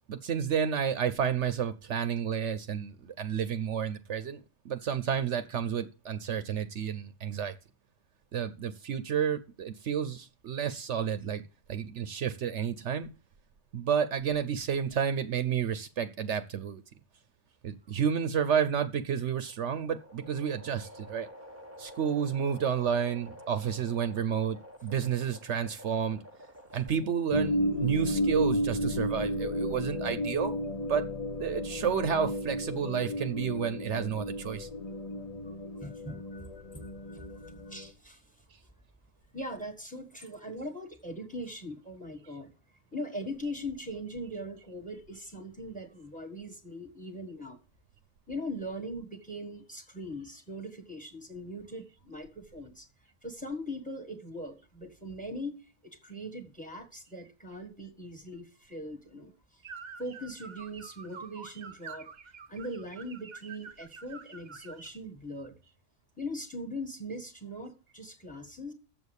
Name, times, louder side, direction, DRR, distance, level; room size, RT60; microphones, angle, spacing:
voice 1, 0.1-4.4 4.6-7.5 8.3-11.4 11.7-13.1 13.7-16.8 17.6-21.3 21.8-26.2 26.7-31.1 31.4-34.7, right 8 dB, 70° right, 1.0 m, -31 dB
sound 1, 19.0-27.3, equal, 15° right, 0.9 m, -50 dB
sound 2, 27.3-37.9, left 1 dB, 35° left, 0.8 m, -33 dB
voice 2, 35.8-38.2 39.3-42.5 42.9-47.6 48.3-52.9 53.2-59.3 60.0-62.1 62.5-65.6 66.2-68.7, equal, 5° left, 1.4 m, -40 dB
sound 3, 59.6-65.0, right 5 dB, 45° right, 0.7 m, -47 dB
7.4 x 7.1 x 8.1 m
omnidirectional pair, 1.3 m